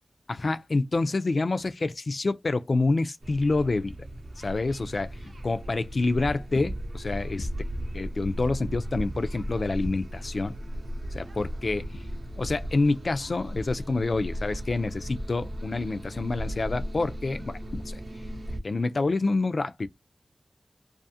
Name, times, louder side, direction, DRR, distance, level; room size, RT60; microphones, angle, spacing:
voice 1, 0.3-3.9 4.4-7.5 7.9-10.5 11.1-12.0 12.4-18.0 18.6-19.9, left 3 dB, 60° left, 0.3 m, -27 dB
sound 1, 3.2-18.6, equal, 65° right, 0.6 m, -36 dB
2.4 x 2.4 x 2.6 m
wide cardioid pair, 80°, 0 cm